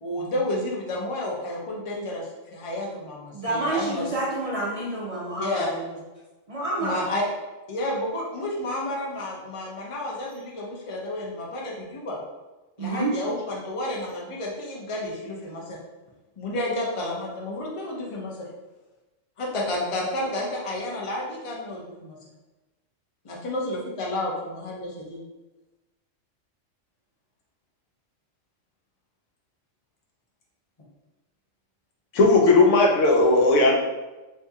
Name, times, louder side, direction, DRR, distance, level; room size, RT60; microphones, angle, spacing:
voice 1, 0.0-4.0 5.4-5.7 6.8-7.3 7.7-12.2 12.8-15.8 16.4-18.5 19.4-22.2 23.2-25.2, left 1 dB, 35° left, -3 dB, 0.5 m, -31 dB
voice 2, 3.3-5.9 6.5-7.1 12.8-13.1, right 2 dB, 55° right, -6 dB, 0.4 m, -29 dB
voice 3, 32.1-33.8, left 2 dB, 75° left, 0 dB, 1.0 m, -17 dB
2.7 x 2.7 x 3.5 m, 1.1 s
omnidirectional pair, 1.4 m